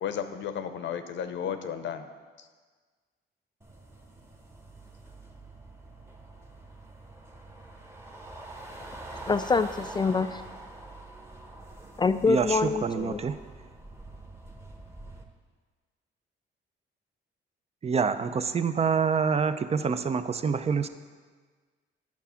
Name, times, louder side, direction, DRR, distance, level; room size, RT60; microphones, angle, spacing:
voice 1, 0.0-2.1 2.4-2.5, left 8 dB, 65° left, 9 dB, 0.8 m, -33 dB
sound 1, 3.6-15.2, right 2 dB, 15° right, 1.1 m, -45 dB
voice 2, 9.3-10.4 12.0-13.2, left 4 dB, 20° left, 11 dB, 0.3 m, -25 dB
voice 3, 12.3-13.4 17.8-20.9, right 6 dB, 30° right, 11 dB, 0.5 m, -26 dB
9.3 x 5.9 x 5.7 m, 1.5 s
cardioid pair, 90°, 20 cm